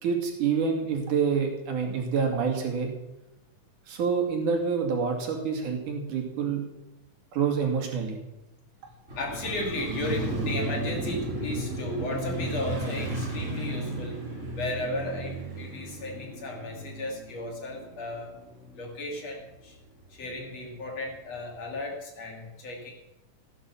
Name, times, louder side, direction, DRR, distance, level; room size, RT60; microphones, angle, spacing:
voice 1, 0.0-2.9 3.9-6.6 7.3-8.2, right 6 dB, 85° right, 2 dB, 3.9 m, -27 dB
voice 2, 9.1-14.2 14.6-18.3 18.7-19.8 20.1-22.9, left 1 dB, 55° left, 0 dB, 3.9 m, -35 dB
Motorcycle, 9.1-19.2 19.5-19.6, right 1 dB, 25° right, 3.2 m, -34 dB
16.5 x 10.5 x 7.0 m, 0.94 s
omnidirectional pair, 3.5 m